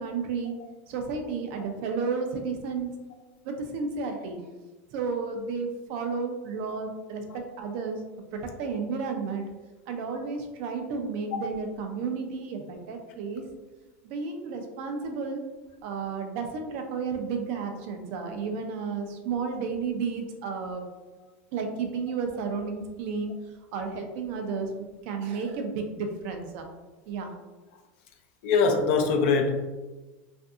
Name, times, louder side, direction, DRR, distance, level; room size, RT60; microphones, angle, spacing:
voice 1, 0.0-0.5 0.9-2.9 3.4-4.4 4.9-8.0 8.6-9.4 9.9-13.4 14.0-15.4 15.8-20.8 21.5-23.3 23.7-24.7 25.0-26.7 27.1-27.3, right 5 dB, 60° right, 4 dB, 0.5 m, -32 dB
voice 2, 28.4-29.7, left 4 dB, 65° left, 4 dB, 0.5 m, -24 dB
2.5 x 2.5 x 2.4 m, 1.2 s
hypercardioid pair, 110°, 8 cm